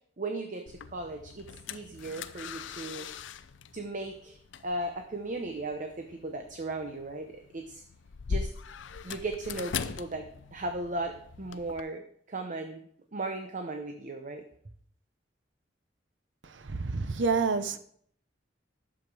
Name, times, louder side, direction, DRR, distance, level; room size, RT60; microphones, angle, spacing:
voice 1, 0.2-3.1 3.7-7.8 8.3-8.5 9.0-12.8 13.1-14.4, right 2 dB, 45° right, 5 dB, 0.8 m, -37 dB
sound 1, 0.7-11.8, left 5 dB, 80° left, 0.6 m, -41 dB
voice 2, 16.5-17.8, right 4 dB, 75° right, 11 dB, 0.8 m, -28 dB
11.0 x 7.3 x 4.8 m, 0.64 s
head